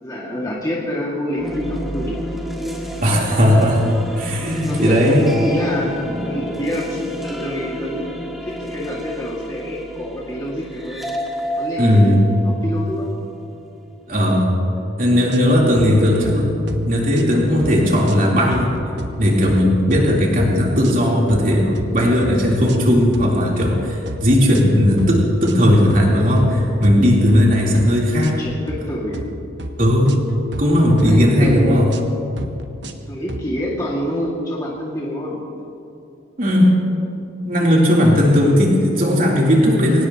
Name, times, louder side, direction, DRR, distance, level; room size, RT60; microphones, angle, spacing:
voice 1, 0.0-2.3 4.4-5.9 6.2-8.1 8.4-11.1 11.6-13.1 15.9-16.3 16.9-17.2 28.2-29.2 31.0-31.7 33.1-35.4 37.6-37.7 39.5-39.7, equal, 20° left, -5 dB, 2.1 m, -27 dB
sound 1, 1.3-13.5, equal, ahead, 1.7 m, -30 dB
voice 2, 3.0-5.2 11.8-12.2 14.1-14.5 15.0-16.5 16.8-18.7 19.2-28.4 29.8-30.2 30.6-31.9 36.4-36.7 37.4-40.1, equal, 45° right, -4 dB, 3.5 m, -16 dB
sound 2, 15.3-15.9 16.2-16.4 16.7-16.9 17.1-17.7 18.1-18.3 18.5-19.2 19.4-19.6 19.9-20.5 20.8-21.0 21.3-21.9 22.2-22.4 22.7-23.3 23.6-23.8 24.1-24.7 25.0-25.2 25.4-26.1 26.4-27.4 27.7-27.9 28.2-28.8 29.1-29.3 29.6-30.7 31.0-31.6 31.9-32.1 32.4-33.0 33.3-33.4, right 1 dB, 60° right, 1.1 m, -32 dB
24.0 x 18.0 x 3.0 m, 2.7 s
head